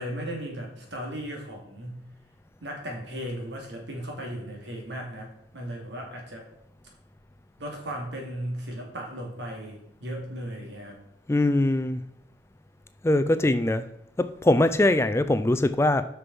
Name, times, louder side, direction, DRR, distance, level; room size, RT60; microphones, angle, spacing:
voice 1, 0.0-2.0 2.6-6.5 7.6-11.0, equal, 90° right, 2.6 m, -36 dB
voice 2, 11.3-12.0 13.0-13.8 14.2-16.0, left 1 dB, 15° left, 0.4 m, -22 dB
6.8 x 6.0 x 5.3 m
head